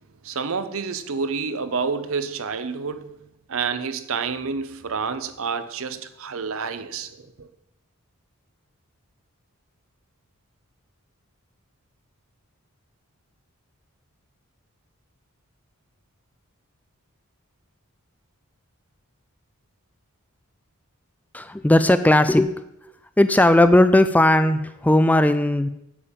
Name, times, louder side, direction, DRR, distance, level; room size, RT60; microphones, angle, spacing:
voice 1, 0.2-3.2 3.5-7.5, right 5 dB, 65° right, 0.7 m, -29 dB
voice 2, 21.3-22.5 23.2-25.7, left 1 dB, 5° left, 0.3 m, -17 dB
8.6 x 7.3 x 5.2 m
head